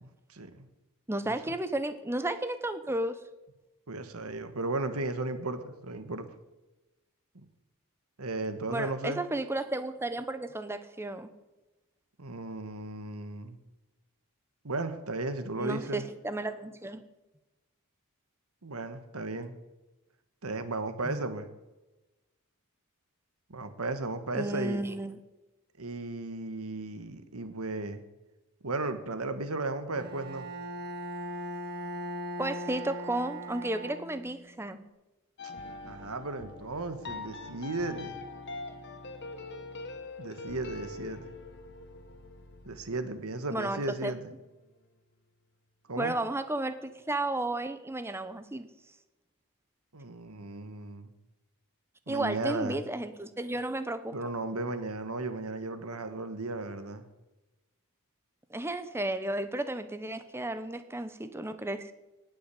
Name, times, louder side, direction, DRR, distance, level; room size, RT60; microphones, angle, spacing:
voice 1, 0.0-0.7 1.3-1.4 3.9-6.3 7.3-7.4 8.2-9.2 12.2-13.6 14.6-16.1 18.6-19.6 20.4-21.5 23.5-24.8 25.8-28.0 28.6-30.5 35.4-35.5 35.8-38.2 40.2-41.2 42.6-44.3 45.9-46.2 49.9-51.1 52.1-52.8 54.1-57.1, right 2 dB, 75° right, 10 dB, 1.4 m, -35 dB
voice 2, 1.1-3.2 8.7-11.3 15.5-17.0 21.0-21.2 24.3-25.2 32.4-34.8 43.5-44.2 46.0-48.7 52.1-54.1 58.5-61.9, right 1 dB, 10° right, 11 dB, 0.9 m, -33 dB
Bowed string instrument, 29.9-34.5, right 1 dB, 45° right, 1.5 m, -39 dB
sound 1, 35.4-44.5, left 3 dB, 50° left, 1.5 m, -44 dB
18.5 x 6.3 x 8.3 m, 1.1 s
head